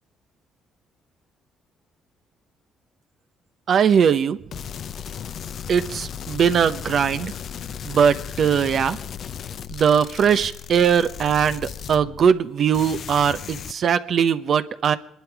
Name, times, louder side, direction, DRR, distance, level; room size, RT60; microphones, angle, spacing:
voice 1, 3.7-4.4 5.7-7.3 7.8-9.0 9.7-15.0, right 7 dB, 60° right, 11 dB, 0.9 m, -20 dB
sound 1, 4.5-12.5 12.7-13.7, left 8 dB, 60° left, 0.7 m, -35 dB
24.5 x 11.5 x 4.8 m, 0.80 s
supercardioid pair, 80°, 0 cm